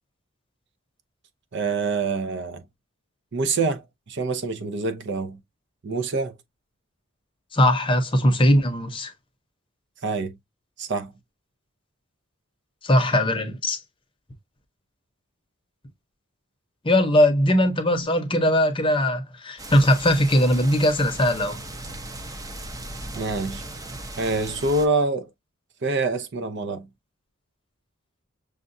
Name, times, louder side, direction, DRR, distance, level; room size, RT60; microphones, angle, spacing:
voice 1, 1.5-2.6 3.3-5.4 5.8-6.3 10.0-10.4 10.8-11.1 23.2-23.6 24.2-25.3 25.8-26.9, right 3 dB, 60° right, 0.6 m, -26 dB
voice 2, 7.5-9.1 12.8-13.8 16.8-21.6, left 1 dB, 25° left, 0.8 m, -20 dB
sound 1, 19.6-24.9, right 2 dB, 20° right, 0.6 m, -37 dB
6.5 x 2.3 x 2.5 m
head